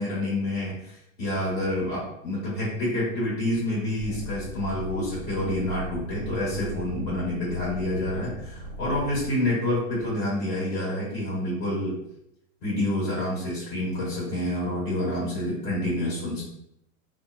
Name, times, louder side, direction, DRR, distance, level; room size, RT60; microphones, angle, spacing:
voice 1, 0.0-12.0 12.6-16.4, left 1 dB, 45° left, -6 dB, 1.5 m, -28 dB
sound 1, 4.0-9.3, right 1 dB, 10° left, 0.8 m, -38 dB
2.6 x 2.1 x 2.5 m, 0.78 s
hypercardioid pair, 115°, 44 cm